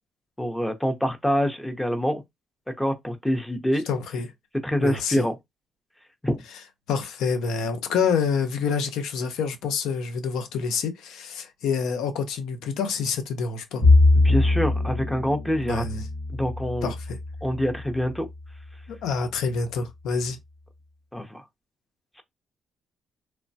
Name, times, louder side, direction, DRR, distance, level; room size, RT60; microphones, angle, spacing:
voice 1, 0.4-2.2 2.8-3.8 4.6-5.3 6.2-6.4 14.2-15.8 16.3-16.9 17.4-18.3 21.1-21.4, equal, 5° left, 0.6 m, -25 dB
voice 2, 3.9-4.3 4.8-5.3 6.9-13.8 15.7-16.1 16.8-17.2 18.9-20.4, left 5 dB, 85° left, 0.6 m, -27 dB
Bowed string instrument, 13.8-18.2, left 2 dB, 65° left, 1.2 m, -22 dB
3.1 x 2.1 x 2.6 m
cardioid pair, 90°, 0 cm